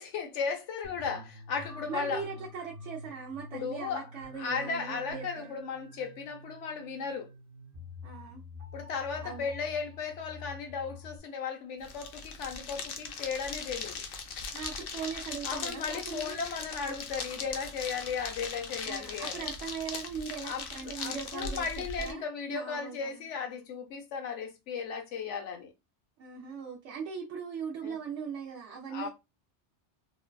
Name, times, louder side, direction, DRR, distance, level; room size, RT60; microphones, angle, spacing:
voice 1, 0.0-2.3 3.5-4.0 4.4-7.3 8.7-14.0 15.4-19.5 20.5-25.7 27.8-28.0 28.9-29.1, left 5 dB, 80° left, 1.0 m, -36 dB
sound 1, 0.8-11.2, left 2 dB, 55° right, 1.1 m, -47 dB
voice 2, 1.8-5.6 8.0-8.4 9.2-9.5 14.5-16.4 16.8-16.9 18.9-23.2 26.2-29.1, right 6 dB, 90° right, 0.9 m, -40 dB
sound 2, 11.8-22.1, left 5 dB, 60° left, 0.7 m, -40 dB
3.1 x 2.2 x 2.2 m
omnidirectional pair, 1.2 m